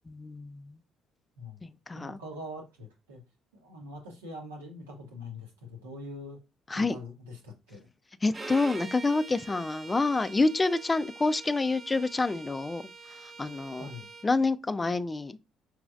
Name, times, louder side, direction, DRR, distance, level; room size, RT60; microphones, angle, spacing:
voice 1, 0.1-0.6 1.6-2.2 6.7-7.0 8.2-12.8 13.4-13.9 14.2-15.4, left 3 dB, 25° left, 0.4 m, -27 dB
voice 2, 1.9-3.2 3.5-6.4 6.7-7.9 13.8-14.1, left 1 dB, 85° right, 1.0 m, -43 dB
Bowed string instrument, 8.3-14.3, right 3 dB, 25° right, 0.7 m, -44 dB
4.9 x 3.1 x 2.4 m
hypercardioid pair, 50°, 0 cm